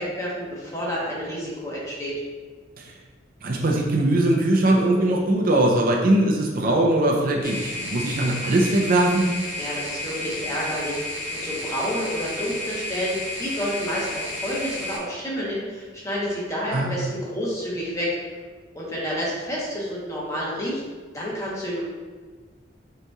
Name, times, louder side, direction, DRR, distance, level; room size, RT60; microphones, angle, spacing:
voice 1, 0.0-2.2 9.6-18.2 18.7-20.8 21.1-21.8, equal, 15° left, -6 dB, 1.0 m, -29 dB
voice 2, 3.4-9.3 16.7-16.9, right 1 dB, 50° right, 0 dB, 0.5 m, -21 dB
sound 1, 7.4-15.0, left 1 dB, 70° left, 1.0 m, -32 dB
5.5 x 2.9 x 2.3 m, 1.4 s
head